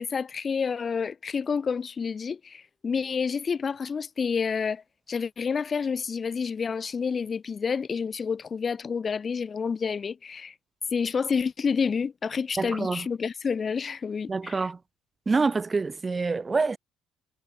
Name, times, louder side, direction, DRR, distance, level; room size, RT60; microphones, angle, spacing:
voice 1, 0.0-4.8 5.1-10.5 10.9-14.7, left 6 dB, 30° left, 1.1 m, -29 dB
voice 2, 12.6-13.1 14.3-14.8 15.3-16.8, right 4 dB, 20° right, 0.4 m, -26 dB
cardioid pair, 115°, 0 cm